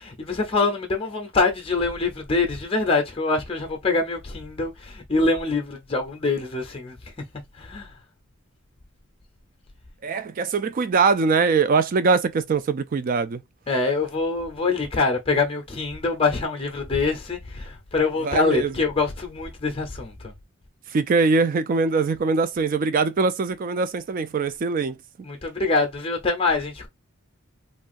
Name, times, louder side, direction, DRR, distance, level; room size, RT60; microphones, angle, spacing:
voice 1, 0.0-7.1 7.5-8.0 13.7-20.3 25.2-26.9, left 3 dB, 25° left, 0.6 m, -24 dB
voice 2, 10.0-13.4 18.2-18.7 20.9-25.0, right 4 dB, 40° right, 0.3 m, -22 dB
3.1 x 2.4 x 2.4 m
head